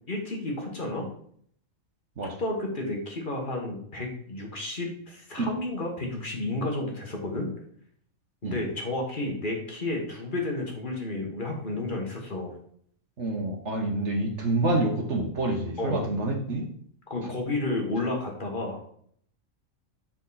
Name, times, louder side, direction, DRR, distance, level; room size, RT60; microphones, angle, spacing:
voice 1, 0.1-1.1 2.2-7.5 8.4-12.6 15.8-16.1 17.1-18.9, left 2 dB, 40° left, 0 dB, 1.5 m, -31 dB
voice 2, 13.2-16.7, right 2 dB, 55° right, 2 dB, 1.4 m, -27 dB
8.0 x 4.4 x 4.0 m, 0.62 s
omnidirectional pair, 1.4 m